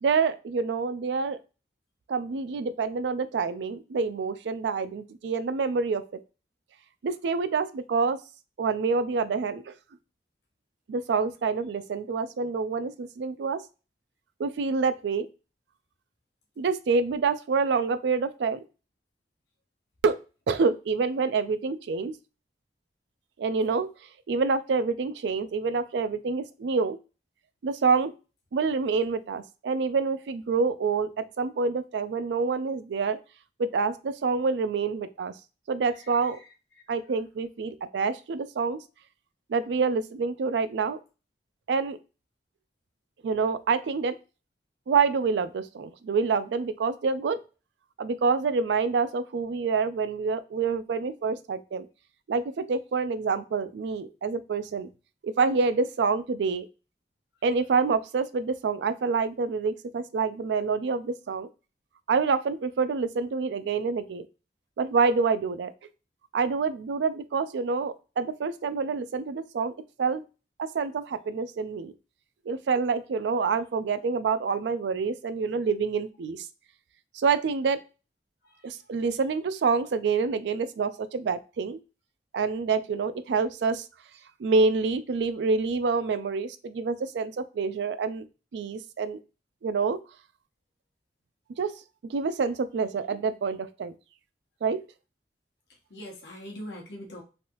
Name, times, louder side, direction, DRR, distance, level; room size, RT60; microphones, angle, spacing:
voice 1, 0.0-1.4 2.1-6.0 7.0-8.2 8.6-9.7 10.9-13.6 14.4-15.3 16.6-18.6 20.0-20.2 20.5-22.1 23.4-23.9 24.3-27.0 27.6-28.1 28.5-31.1 31.4-33.2 33.6-35.3 35.7-36.4 36.9-38.8 39.5-41.0 41.7-42.0 43.2-44.2 44.9-47.4 48.0-51.9 52.3-54.9 55.2-56.6 57.4-61.5 62.1-64.3 64.8-65.7 66.3-69.7 70.0-70.2 70.6-71.9 72.5-76.5 77.1-77.8 78.6-81.8 82.3-83.8 84.4-88.2 88.5-89.2 89.6-90.0 91.6-91.7 92.1-93.9 94.6-94.8, right 4 dB, 80° right, 11 dB, 0.4 m, -27 dB
voice 2, 36.0-36.5 78.4-78.7 95.9-97.2, equal, 80° left, -1 dB, 0.9 m, -43 dB
3.2 x 2.6 x 2.8 m, 0.32 s
head